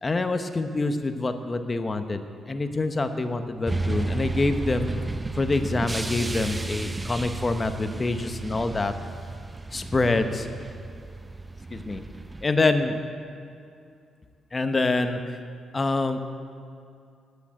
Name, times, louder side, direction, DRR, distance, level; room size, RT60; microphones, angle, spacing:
voice 1, 0.0-5.0 5.3-8.9 9.7-10.5 11.7-12.0 12.4-13.0 14.5-15.2 15.7-16.2, left 3 dB, 30° left, 8 dB, 1.0 m, -26 dB
sound 1, 3.6-12.4, right 3 dB, 20° right, 0.6 m, -33 dB
8.8 x 8.2 x 9.4 m, 2.4 s
supercardioid pair, 60°, 0 cm